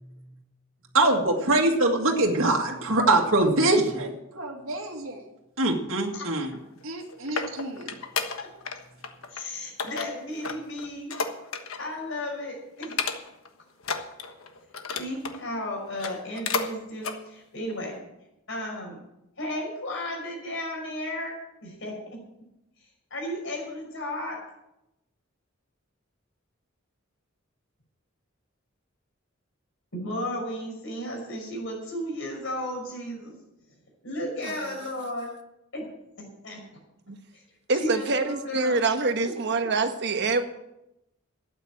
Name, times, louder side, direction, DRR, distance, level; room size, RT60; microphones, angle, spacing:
voice 1, 0.9-5.2 5.6-6.5 6.8-7.9, right 2 dB, 75° right, 0 dB, 2.0 m, -24 dB
sound 1, 6.8-8.8 9.0-9.4 9.8-11.9 12.3-12.4 12.8-13.5 13.8-15.4 15.9-16.7 17.0-17.2 17.7-17.8, left 5 dB, 85° left, 1.3 m, -32 dB
voice 2, 9.3-11.1 11.8-13.1 15.0-17.9 18.5-19.0 19.4-21.3 21.6-22.2 23.1-24.4 29.9-33.3 34.0-35.3 35.7-35.9 36.2-36.6 37.3-37.4 37.8-38.7 39.2-39.3, left 1 dB, 65° left, 0 dB, 5.7 m, -34 dB
voice 3, 37.7-40.4, right 3 dB, 55° right, 6 dB, 1.4 m, -25 dB
12.5 x 9.0 x 7.5 m, 0.89 s
head